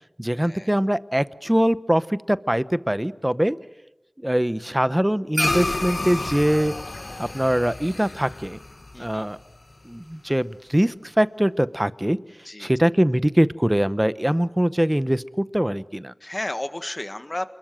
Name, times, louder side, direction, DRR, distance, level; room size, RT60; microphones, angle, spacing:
voice 1, 0.2-3.6 4.2-6.7 7.2-8.6 9.0-9.4 9.8-12.2 12.6-16.1, equal, 15° right, 15 dB, 0.8 m, -22 dB
sound 1, 5.3-10.0, left 2 dB, 60° left, 1.0 m, -30 dB
voice 2, 8.9-9.2 12.4-12.7 16.2-17.5, left 1 dB, 35° left, 10 dB, 1.7 m, -32 dB
28.5 x 21.5 x 7.6 m, 0.97 s
wide cardioid pair, 60°, 0 cm